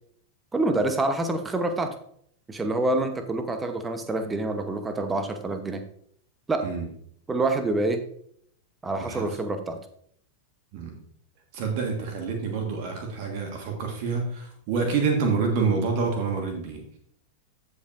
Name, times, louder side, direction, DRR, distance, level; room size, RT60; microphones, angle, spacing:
voice 1, 0.5-1.9 2.5-5.8 6.5-6.7 7.3-8.0 8.8-9.8, right 2 dB, 15° right, 8 dB, 0.9 m, -26 dB
voice 2, 11.5-17.0, right 5 dB, 45° right, 3 dB, 1.5 m, -27 dB
15.0 x 5.1 x 2.6 m, 0.66 s
figure-of-eight pair, 90°, 0 cm